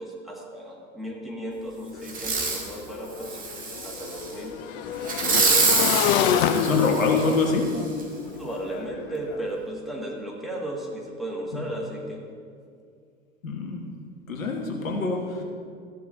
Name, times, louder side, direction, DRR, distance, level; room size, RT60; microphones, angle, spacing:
voice 1, 0.0-3.4 3.8-4.6 5.2-6.1 8.3-12.2, right 1 dB, ahead, -3 dB, 2.0 m, -35 dB
Motorcycle / Engine, 1.9-2.0 2.3-9.4, left 9 dB, 40° left, 0.7 m, -27 dB
Fireworks, 2.1-2.7 3.2-4.3 5.0-7.4 8.0-8.1, right 4 dB, 20° right, 1.7 m, -25 dB
voice 2, 6.5-7.7 13.4-13.8 14.3-15.4, left 3 dB, 70° left, 1 dB, 1.6 m, -26 dB
15.5 x 11.0 x 2.7 m, 2.3 s
figure-of-eight pair, 85°, 41 cm